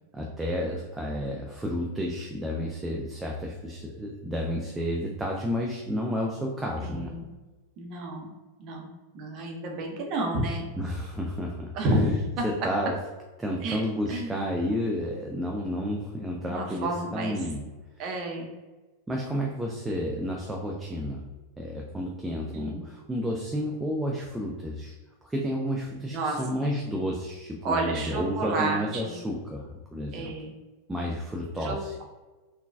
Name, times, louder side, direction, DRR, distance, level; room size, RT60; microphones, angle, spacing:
voice 1, 0.1-7.1 10.8-11.7 12.4-12.9 13.4-17.7 19.1-21.2 21.6-24.9 25.2-30.3 30.9-31.9, equal, 10° right, -1 dB, 0.4 m, -31 dB
voice 2, 6.8-7.3 7.8-8.3 8.6-10.7 11.7-12.4 13.6-13.8 14.1-14.4 16.4-17.4 18.0-18.5 22.5-22.8 26.1-26.7 27.6-29.2 30.1-30.5 31.6-31.8, right 1 dB, 40° right, 1 dB, 0.7 m, -30 dB
3.7 x 2.3 x 2.4 m, 1.2 s
figure-of-eight pair, 90°, 0 cm